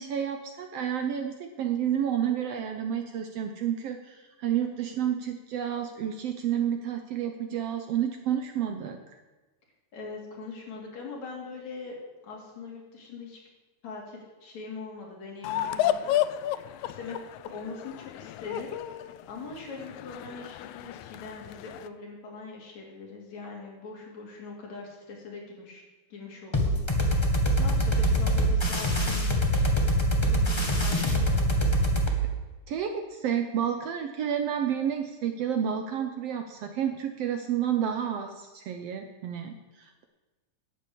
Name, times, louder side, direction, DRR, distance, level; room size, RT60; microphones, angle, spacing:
voice 1, 0.0-9.0 32.7-40.0, right 9 dB, 70° right, 6 dB, 1.6 m, -30 dB
voice 2, 9.9-12.0 12.2-13.4 13.8-17.2 17.4-18.7 19.3-25.8 26.1-26.8 27.2-29.6 30.2-31.7, left 4 dB, 65° left, -1 dB, 4.0 m, -42 dB
sound 1, 15.4-21.9, left 12 dB, 80° left, 1.9 m, -32 dB
sound 2, 26.5-32.1, equal, 25° left, 0.5 m, -24 dB
11.0 x 7.9 x 8.5 m, 1.2 s
omnidirectional pair, 3.4 m